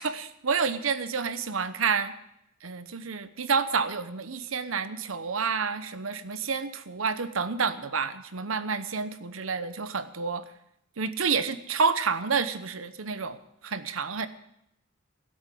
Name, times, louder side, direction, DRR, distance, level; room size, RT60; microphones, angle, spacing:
voice 1, 0.0-2.1 2.6-10.4 11.0-13.4 13.6-14.3, right 5 dB, 90° right, 11 dB, 1.0 m, -29 dB
17.0 x 8.0 x 7.8 m, 0.80 s
head